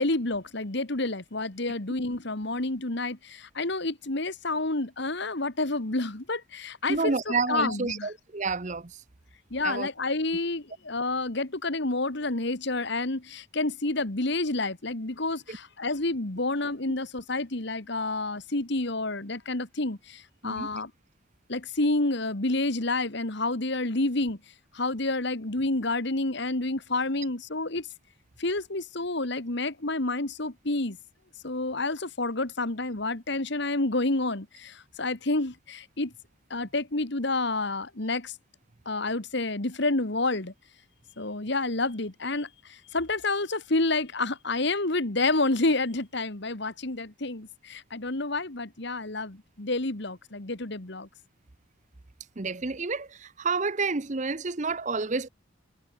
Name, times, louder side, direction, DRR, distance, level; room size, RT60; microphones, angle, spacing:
voice 1, 0.0-8.1 9.5-20.9 21.5-24.4 24.7-27.9 28.4-31.0 31.4-36.1 36.5-38.3 38.9-40.5 41.2-51.1, left 2 dB, 55° left, 1.8 m, -29 dB
voice 2, 6.9-9.0 9.6-9.9 15.5-15.6 20.4-20.7 52.4-55.3, right 4 dB, 35° right, 0.8 m, -29 dB
head